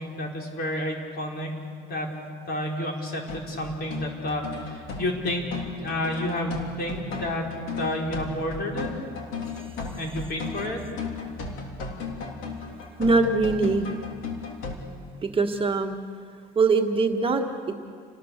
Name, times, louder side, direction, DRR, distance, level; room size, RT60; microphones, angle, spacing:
voice 1, 0.0-1.5 1.9-2.1 2.5-5.5 5.8-7.4 7.8-8.9 10.0-10.8, left 1 dB, 50° left, 0 dB, 4.9 m, -30 dB
sound 1, 3.3-14.8, left 4 dB, 80° left, 3.5 m, -35 dB
voice 2, 13.0-13.9 15.2-16.0 16.5-17.7, right 3 dB, 25° right, 3 dB, 1.6 m, -22 dB
29.0 x 19.0 x 6.7 m, 2.1 s
cardioid pair, 120°, 20 cm